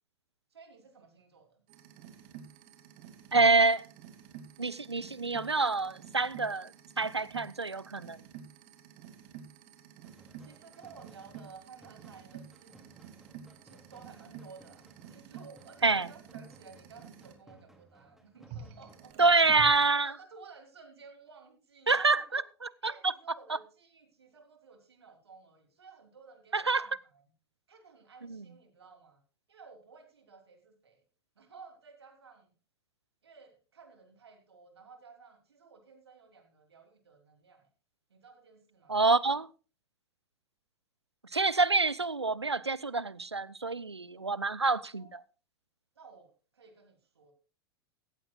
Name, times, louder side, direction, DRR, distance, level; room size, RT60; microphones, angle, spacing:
voice 1, 0.5-1.6 10.4-12.9 13.6-19.1 19.9-22.4 22.8-27.2 27.7-29.2 29.5-31.0 31.4-32.5 33.2-37.7 38.1-39.2 44.9-45.1 45.9-47.3, right 5 dB, 75° right, 3.3 m, -54 dB
sound 1, 1.7-17.3 18.5-19.9, right 8 dB, 45° right, 2.3 m, -50 dB
voice 2, 3.3-3.8 4.6-6.7 7.0-8.2 15.8-16.1 19.2-20.1 21.9-22.4 22.8-23.1 23.5-23.6 26.5-26.9 28.2-28.5 38.9-39.5 41.3-45.2, right 3 dB, 90° right, 0.6 m, -27 dB
sound 2, 10.0-19.2, right 2 dB, ahead, 2.5 m, -60 dB
16.5 x 15.0 x 2.3 m
figure-of-eight pair, 90°, 14 cm